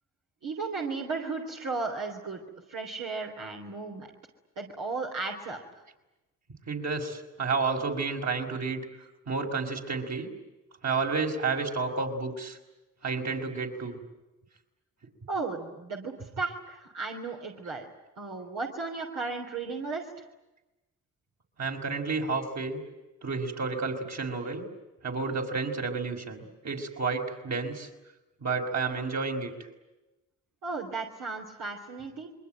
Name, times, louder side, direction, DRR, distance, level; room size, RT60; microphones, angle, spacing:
voice 1, 0.4-2.4 2.7-4.1 4.6-5.6 15.3-17.9 18.2-20.1 30.6-32.3, right 4 dB, 85° right, -1 dB, 3.5 m, -35 dB
voice 2, 6.7-8.8 9.3-10.3 10.8-12.6 13.0-14.0 21.6-22.8 23.2-24.7 25.0-27.9 28.4-29.5, right 4 dB, 60° right, 2 dB, 5.4 m, -31 dB
28.0 x 23.0 x 9.1 m, 1.0 s
supercardioid pair, 60°, 31 cm